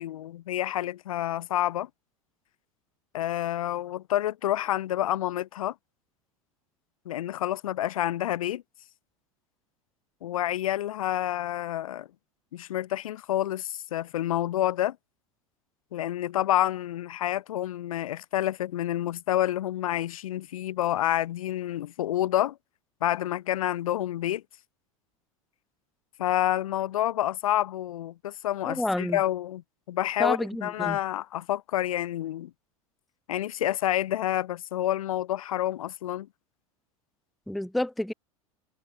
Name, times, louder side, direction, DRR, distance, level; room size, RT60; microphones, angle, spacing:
voice 1, 0.0-1.9 3.1-5.7 7.1-8.6 10.2-12.1 12.5-15.0 15.9-22.6 23.0-24.4 26.2-29.6 29.9-32.5 33.3-36.3, left 13 dB, 80° left, 0.6 m, -28 dB
voice 2, 28.7-29.2 30.2-31.0 37.5-38.1, left 1 dB, ahead, 0.3 m, -29 dB
hypercardioid pair, 90°, 18 cm